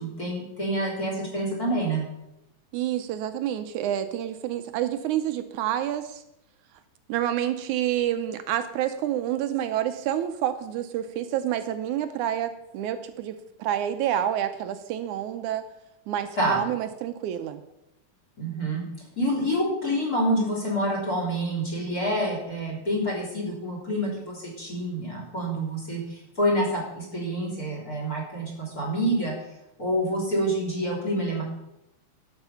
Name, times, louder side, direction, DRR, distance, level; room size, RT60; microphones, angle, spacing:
voice 1, 0.0-2.0 16.4-16.6 18.4-18.8 19.2-29.3 29.8-31.4, equal, 30° left, -1 dB, 3.7 m, -27 dB
voice 2, 2.7-6.2 7.1-15.6 16.1-17.6, right 11 dB, 80° right, 9 dB, 2.0 m, -28 dB
11.5 x 8.0 x 5.7 m, 0.86 s
omnidirectional pair, 3.5 m